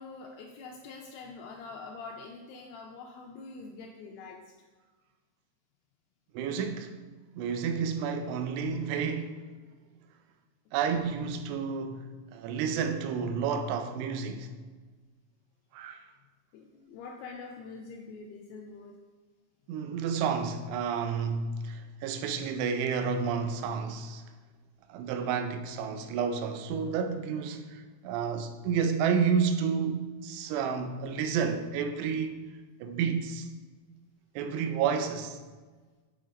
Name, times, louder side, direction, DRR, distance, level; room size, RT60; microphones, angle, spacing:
voice 1, 0.0-4.7 10.9-11.0 16.5-19.0, left 4 dB, 85° left, 2.3 m, -45 dB
voice 2, 6.3-7.0 7.3-9.4 10.7-14.5 15.7-16.1 19.7-24.2 24.9-32.4 32.8-33.5 34.4-35.4, right 6 dB, 80° right, 2.5 m, -30 dB
7.4 x 5.7 x 4.1 m
omnidirectional pair, 5.3 m